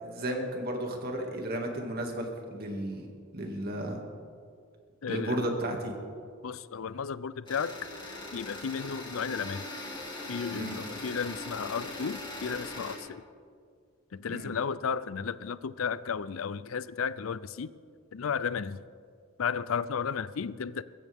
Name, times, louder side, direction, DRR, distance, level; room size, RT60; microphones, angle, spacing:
voice 1, 0.0-3.1 3.3-4.0 5.1-5.9 10.5-10.8 14.3-14.5, right 1 dB, 50° right, 2 dB, 2.3 m, -33 dB
voice 2, 5.0-5.5 6.4-7.9 8.3-9.7 10.3-13.2 14.1-17.7 18.1-18.8 19.4-20.8, left 6 dB, 85° left, 16 dB, 0.5 m, -33 dB
sound 1, 7.5-13.0, left 1 dB, 25° left, 2.9 m, -40 dB
22.0 x 15.0 x 3.6 m, 2.1 s
head